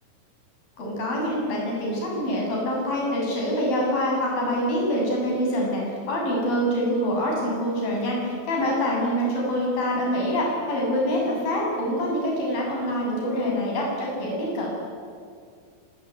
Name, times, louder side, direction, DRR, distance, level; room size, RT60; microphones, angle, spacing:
voice 1, 0.8-5.8 6.1-14.7, equal, 60° left, -2 dB, 9.6 m, -25 dB
25.5 x 23.0 x 9.3 m, 2.2 s
omnidirectional pair, 4.6 m